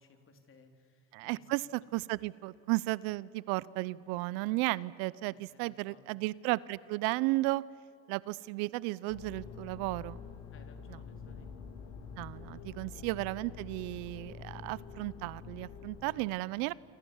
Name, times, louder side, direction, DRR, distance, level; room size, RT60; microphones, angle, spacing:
voice 1, 0.0-1.6 5.2-6.2 10.5-11.5 12.3-12.9 16.1-16.4, left 3 dB, 40° left, 6 dB, 4.0 m, -61 dB
voice 2, 1.1-7.6 8.1-10.2 12.2-16.7, right 21 dB, 75° right, 22 dB, 0.7 m, -34 dB
sound 1, 9.1-16.2, left 5 dB, 80° left, 3.0 m, -47 dB
27.5 x 26.0 x 7.3 m, 2.6 s
supercardioid pair, 105°, 34 cm